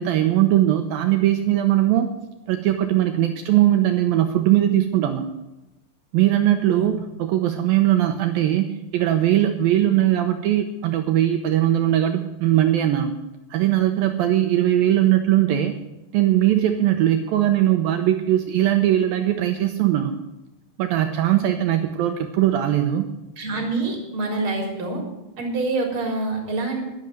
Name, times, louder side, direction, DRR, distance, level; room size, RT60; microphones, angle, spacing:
voice 1, 0.0-2.1 2.5-5.3 6.1-13.1 13.5-15.7 16.1-20.1 20.8-23.1, right 12 dB, 75° right, 6 dB, 2.2 m, -20 dB
voice 2, 23.4-25.0 25.4-26.8, right 3 dB, 30° right, 1 dB, 4.1 m, -26 dB
11.5 x 11.0 x 7.8 m, 0.98 s
omnidirectional pair, 5.1 m